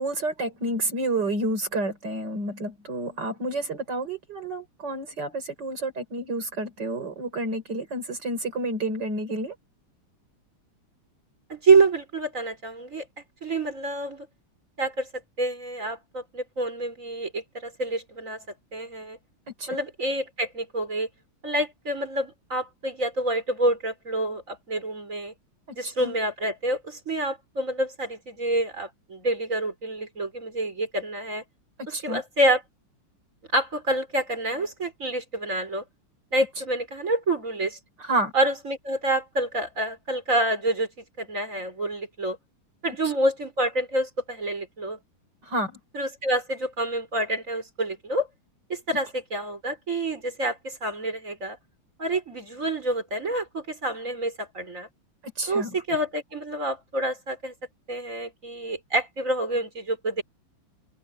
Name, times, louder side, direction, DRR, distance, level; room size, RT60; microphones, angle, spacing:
voice 1, 0.0-9.6 19.6-19.8 25.8-26.1 31.9-32.2 38.0-38.3 45.4-45.8 55.4-55.7, right 2 dB, 50° right, 5.6 m, -29 dB
voice 2, 11.5-13.1 13.4-14.3 14.8-15.1 15.4-18.4 18.7-19.2 19.7-21.1 21.4-25.3 25.7-31.4 31.9-32.6 33.5-35.8 36.3-37.8 38.3-42.4 42.8-45.0 45.9-48.3 48.7-51.6 52.0-54.9 55.5-57.5 57.9-60.2, right 2 dB, 35° right, 4.8 m, -27 dB
open air
omnidirectional pair, 2.4 m